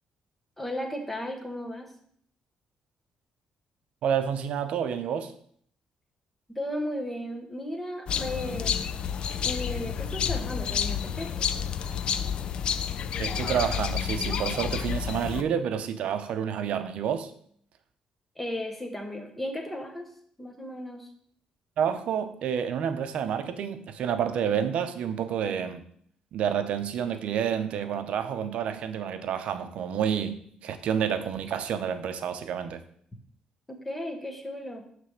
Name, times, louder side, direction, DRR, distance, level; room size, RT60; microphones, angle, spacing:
voice 1, 0.6-1.9 6.5-9.0 9.4-11.4 18.4-20.1 20.4-21.1 33.7-34.8, left 1 dB, 5° left, 3 dB, 1.0 m, -35 dB
voice 2, 4.0-5.3 13.2-17.3 21.8-25.8 26.3-32.8, right 8 dB, 65° right, 9 dB, 0.6 m, -29 dB
sound 1, 8.1-15.4, left 7 dB, 45° left, 0.4 m, -30 dB
9.2 x 3.3 x 6.4 m, 0.63 s
cardioid pair, 175°, 2 cm